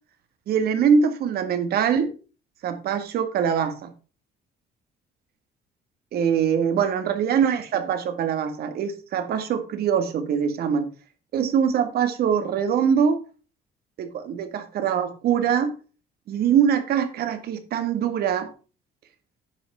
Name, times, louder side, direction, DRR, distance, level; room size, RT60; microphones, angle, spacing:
voice 1, 0.5-2.1 2.6-3.9 6.1-10.9 11.3-13.2 14.0-15.7 16.3-18.5, right 7 dB, 65° right, 1.8 m, -23 dB
10.0 x 6.1 x 5.5 m
cardioid pair, 110°, 17 cm